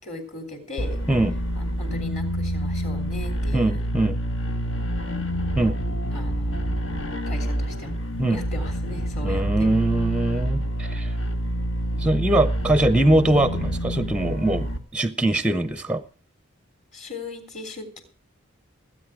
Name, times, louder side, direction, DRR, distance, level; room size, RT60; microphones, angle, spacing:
voice 1, 0.0-1.0 1.5-3.8 6.1-6.8 7.2-7.9 8.3-9.7 16.9-18.0, left 1 dB, 35° left, 4 dB, 3.2 m, -38 dB
sound 1, 0.8-14.8, equal, 70° left, 1.6 m, -27 dB
voice 2, 3.5-4.2 5.6-5.8 8.2-8.4 9.2-11.1 11.9-16.0, right 1 dB, 5° right, 12 dB, 0.6 m, -22 dB
19.0 x 8.9 x 4.9 m, 0.40 s
head